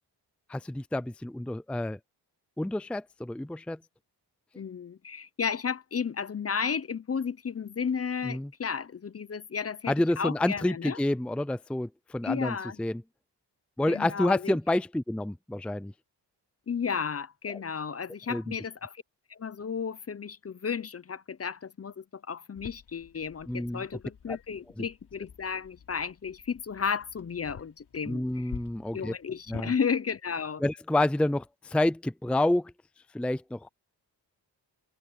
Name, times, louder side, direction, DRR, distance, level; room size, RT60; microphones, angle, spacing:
voice 1, 0.5-2.0 2.6-3.8 8.2-8.5 9.9-13.0 13.8-15.9 17.5-17.6 18.3-18.4 23.5-23.8 24.3-24.4 28.1-29.1 29.5-29.7 30.6-32.7 33.1-33.7, left 1 dB, 5° left, 0.5 m, -29 dB
voice 2, 4.6-11.0 12.2-12.8 13.9-14.6 16.7-19.0 19.3-28.5 28.9-30.6, left 6 dB, 35° left, 0.8 m, -33 dB
sound 1, 22.6-29.7, left 7 dB, 75° left, 4.2 m, -49 dB
wide cardioid pair, 100°, 40 cm